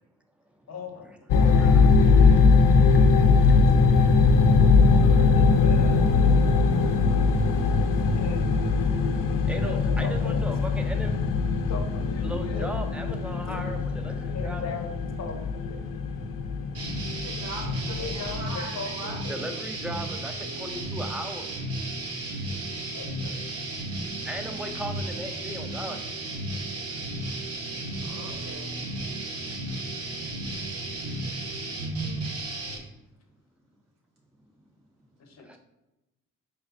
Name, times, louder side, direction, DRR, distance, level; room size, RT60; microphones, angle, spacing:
voice 1, 0.7-1.7 4.9-6.8 8.1-8.9 9.5-10.4 11.5-12.7 13.5-13.8 14.3-15.3 15.7-15.8 17.9-19.4 22.7-23.7 35.2-35.6, left 5 dB, 55° left, 4 dB, 0.7 m, -39 dB
sound 1, 1.3-18.4, left 4 dB, 85° left, 0.5 m, -21 dB
voice 2, 1.6-5.3 7.6-8.0 9.0-11.1 12.2-14.6 16.8-16.9 19.3-21.4 24.2-26.0 29.1-29.3 35.4-35.6, right 1 dB, 5° right, 5 dB, 0.4 m, -39 dB
sound 2, 16.7-32.8, right 2 dB, 50° right, 0.7 m, -34 dB
voice 3, 17.1-19.2 23.5-23.6 28.1-28.6, right 1 dB, 90° right, -4 dB, 1.0 m, -41 dB
4.3 x 3.4 x 2.5 m, 0.97 s
cardioid pair, 95°, 32 cm